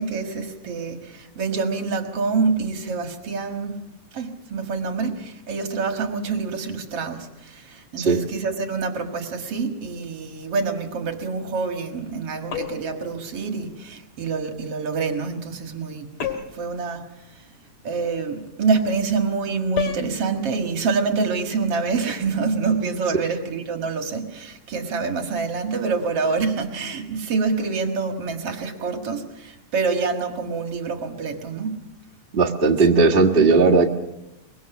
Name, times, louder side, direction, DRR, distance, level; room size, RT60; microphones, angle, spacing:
voice 1, 0.0-3.8 4.1-16.1 16.5-17.0 17.3-17.4 17.8-31.9, right 4 dB, 55° right, 5 dB, 2.5 m, -26 dB
sound 1, 12.5-13.0 16.2-16.7 19.8-20.1, left 8 dB, 60° left, 3.2 m, -29 dB
voice 2, 32.3-33.9, right 4 dB, 25° right, 0 dB, 1.2 m, -17 dB
24.0 x 22.0 x 7.1 m, 0.91 s
omnidirectional pair, 3.5 m